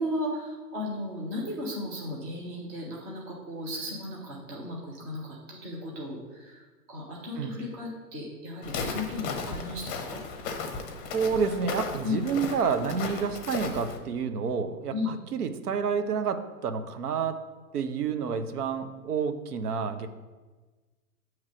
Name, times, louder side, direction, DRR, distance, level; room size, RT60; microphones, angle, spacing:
voice 1, 0.0-6.6 6.9-10.2 12.0-12.2 14.9-15.1, left 2 dB, 10° right, -3 dB, 0.3 m, -35 dB
Walk footsteps, 8.6-14.0, left 4 dB, 30° left, 0.7 m, -35 dB
voice 2, 11.1-17.4 17.7-20.1, right 6 dB, 75° right, 9 dB, 0.7 m, -29 dB
7.2 x 3.2 x 4.8 m, 1.3 s
hypercardioid pair, 115°, 47 cm